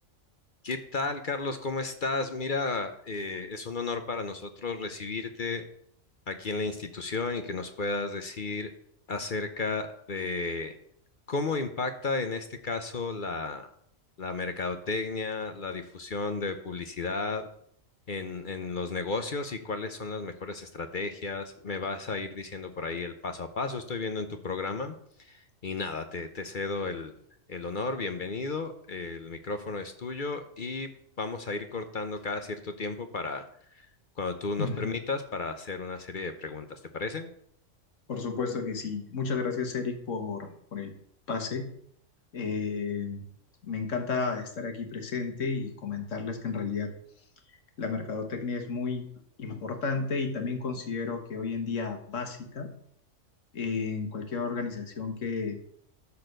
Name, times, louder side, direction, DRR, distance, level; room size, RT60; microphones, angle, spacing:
voice 1, 0.6-5.6 6.3-8.7 9.1-10.8 11.3-13.7 14.2-17.5 18.1-27.2 27.5-30.9 31.2-33.4 33.7-33.9 34.2-37.3, left 3 dB, 45° left, 8 dB, 0.9 m, -33 dB
voice 2, 34.6-35.0 38.1-40.9 41.3-41.7 42.3-43.2 43.6-46.9 47.8-49.1 49.4-52.7 53.5-55.6, left 4 dB, 70° left, 5 dB, 1.8 m, -32 dB
13.0 x 4.3 x 6.6 m, 0.67 s
omnidirectional pair, 1.3 m